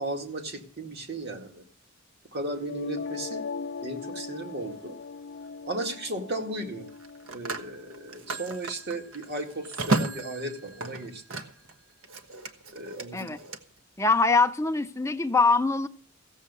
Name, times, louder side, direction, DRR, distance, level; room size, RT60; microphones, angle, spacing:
voice 1, 0.0-1.6 2.3-3.5 3.8-5.0 5.7-6.9 7.3-11.4 12.7-13.3, right 1 dB, 50° right, 2.1 m, -35 dB
sound 1, 2.4-8.4, left 4 dB, 55° left, 0.5 m, -39 dB
Telephone, 4.7-4.9 6.9-11.7 12.0-13.6, right 2 dB, 70° right, 1.3 m, -34 dB
voice 2, 14.0-15.9, left 3 dB, 15° left, 0.7 m, -23 dB
16.0 x 7.3 x 6.8 m
head